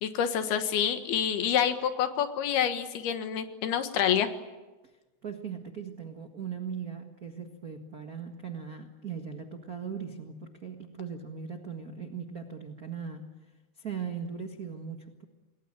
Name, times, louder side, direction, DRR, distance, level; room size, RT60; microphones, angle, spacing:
voice 1, 0.0-4.3, left 9 dB, 90° left, 8 dB, 3.5 m, -27 dB
voice 2, 5.2-13.3 13.8-15.2, right 6 dB, 55° right, 5 dB, 1.0 m, -39 dB
28.5 x 20.5 x 8.7 m, 1.1 s
omnidirectional pair, 4.4 m